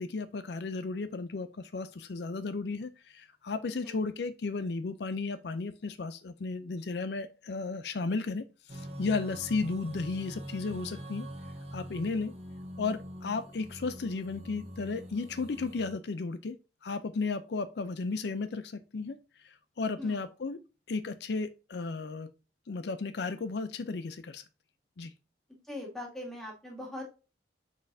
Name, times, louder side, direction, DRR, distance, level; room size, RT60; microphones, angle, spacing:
voice 1, 0.0-11.3 11.7-12.3 12.8-16.6 16.8-20.6 20.9-22.3 22.7-24.4 25.0-25.1, left 4 dB, 65° left, 0.5 m, -34 dB
sound 1, 8.7-15.9, equal, 35° right, 1.5 m, -44 dB
voice 2, 25.7-27.0, left 1 dB, ahead, 2.3 m, -41 dB
6.4 x 6.1 x 2.7 m
head